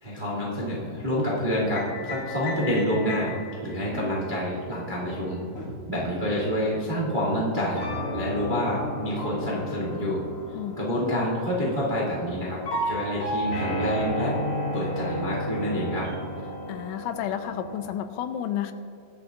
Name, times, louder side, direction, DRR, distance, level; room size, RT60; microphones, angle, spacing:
voice 1, 0.0-3.3 3.6-5.4 5.9-7.8 8.1-10.2 10.8-14.4 14.7-16.1, equal, 45° right, -6 dB, 0.6 m, -27 dB
sound 1, 0.9-6.8 7.8-17.8, left 1 dB, 40° left, 2.2 m, -34 dB
voice 2, 16.7-18.7, left 10 dB, 85° left, 9 dB, 2.9 m, -31 dB
24.0 x 8.7 x 2.6 m, 2.8 s
omnidirectional pair, 5.5 m